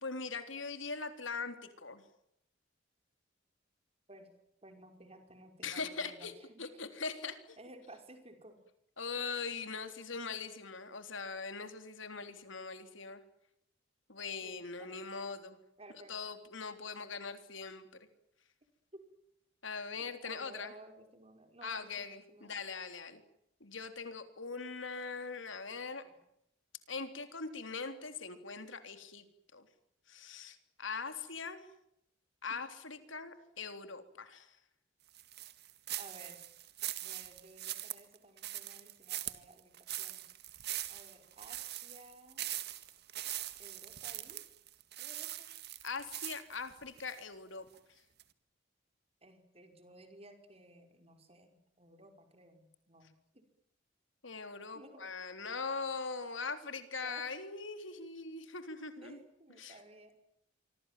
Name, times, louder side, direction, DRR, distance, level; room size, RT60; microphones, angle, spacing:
voice 1, 0.0-2.0 5.6-6.3 6.6-7.6 9.0-13.2 14.1-15.6 16.1-17.9 19.6-20.7 21.6-23.2 23.6-26.0 26.9-29.3 29.5-29.7 30.1-31.7 32.4-34.6 45.8-47.7 54.2-59.2 59.6-59.8, left 4 dB, 80° left, 9 dB, 3.6 m, -41 dB
voice 2, 4.6-6.8 7.6-8.6 14.4-15.0 15.8-16.2 18.9-19.0 20.0-22.6 26.0-26.2 36.0-36.4 37.0-40.2 40.9-42.5 43.6-44.4 45.0-45.5 49.2-53.5 54.7-55.2 55.6-55.9 57.0-57.3 59.0-60.1, right 2 dB, 30° right, 6 dB, 5.1 m, -56 dB
sound 1, 35.1-47.2 47.7-47.8 48.2-48.3, right 14 dB, 55° right, 2.0 m, -42 dB
26.0 x 25.5 x 7.5 m, 0.79 s
head